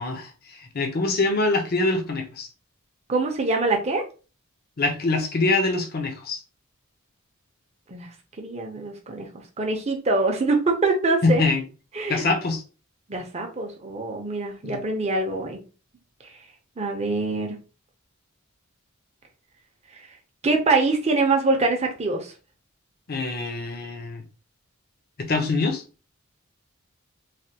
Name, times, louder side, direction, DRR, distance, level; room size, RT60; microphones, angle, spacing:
voice 1, 0.0-2.5 4.8-6.4 11.2-11.6 12.1-12.6 14.6-14.8 23.1-24.2 25.2-25.8, left 3 dB, 45° left, 4 dB, 0.6 m, -24 dB
voice 2, 3.1-4.0 7.9-8.1 8.4-9.3 9.6-11.4 11.9-12.3 13.1-15.6 16.8-17.6 19.9-20.1 20.4-22.3, right 3 dB, 30° right, 2 dB, 0.6 m, -24 dB
3.2 x 2.2 x 2.8 m, 0.34 s
head